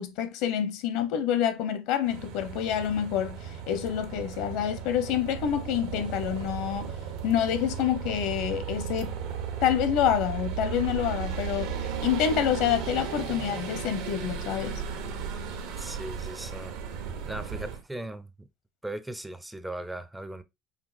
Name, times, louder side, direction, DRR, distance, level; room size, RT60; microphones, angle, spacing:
voice 1, 0.0-6.9 7.2-9.2 9.6-11.7 12.0-14.8, left 9 dB, 70° left, 0.8 m, -27 dB
sound 1, 2.1-17.8, right 7 dB, 85° right, 1.1 m, -35 dB
voice 2, 15.8-16.7 17.2-18.5 18.8-20.4, right 1 dB, 5° right, 0.4 m, -38 dB
5.2 x 2.9 x 2.4 m
cardioid pair, 145°, 0 cm